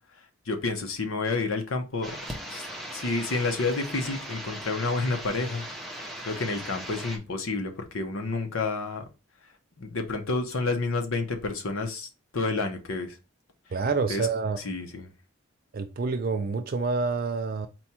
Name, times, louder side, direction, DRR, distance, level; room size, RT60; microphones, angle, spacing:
voice 1, 0.5-2.2 2.5-2.6 2.9-5.6 5.9-9.0 9.8-13.2 14.1-14.3 14.6-15.1, left 3 dB, 75° left, 0.9 m, -29 dB
sound 1, 2.0-7.2, equal, ahead, 0.7 m, -38 dB
voice 2, 13.7-14.6 15.7-17.7, right 4 dB, 45° right, 0.3 m, -27 dB
4.3 x 2.3 x 4.2 m
head